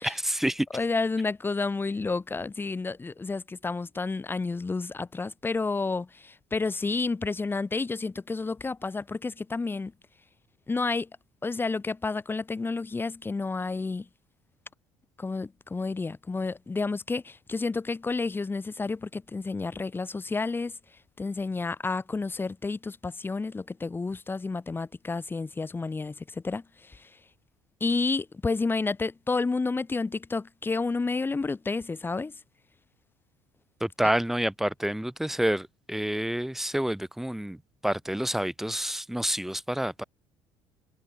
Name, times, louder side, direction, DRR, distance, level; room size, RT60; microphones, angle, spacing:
voice 1, 0.0-0.7 33.8-37.6 37.8-40.0, right 1 dB, 5° right, 1.7 m, -28 dB
voice 2, 0.7-9.9 10.7-11.1 11.4-14.1 15.2-20.7 21.2-27.1 27.8-32.3, left 3 dB, 20° left, 0.9 m, -30 dB
supercardioid pair, 80°, 11 cm